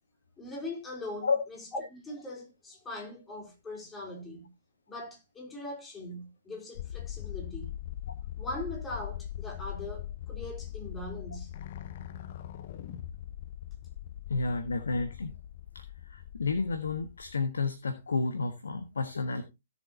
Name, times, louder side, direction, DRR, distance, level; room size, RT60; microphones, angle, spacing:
voice 1, 0.4-4.5 4.9-7.7 8.4-11.5, left 1 dB, 10° left, 4.1 m, -41 dB
sound 1, 6.8-17.4, left 11 dB, 40° left, 0.9 m, -41 dB
voice 2, 14.3-15.3 15.7-15.8 16.1-19.4, left 4 dB, 65° left, 1.4 m, -31 dB
17.0 x 7.6 x 2.8 m
figure-of-eight pair, 125°, 0 cm